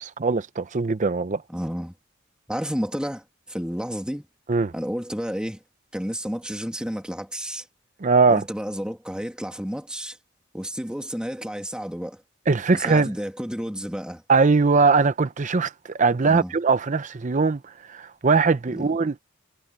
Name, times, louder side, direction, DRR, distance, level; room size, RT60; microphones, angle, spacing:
voice 1, 0.0-1.4 4.5-4.7 8.0-8.4 12.5-13.1 14.3-19.1, right 4 dB, 40° right, 0.6 m, -21 dB
voice 2, 1.5-1.9 2.5-4.3 4.7-5.6 5.9-7.7 8.3-10.2 10.5-12.2 12.7-14.2 16.2-16.5 18.8-18.9, equal, 5° right, 2.2 m, -31 dB
head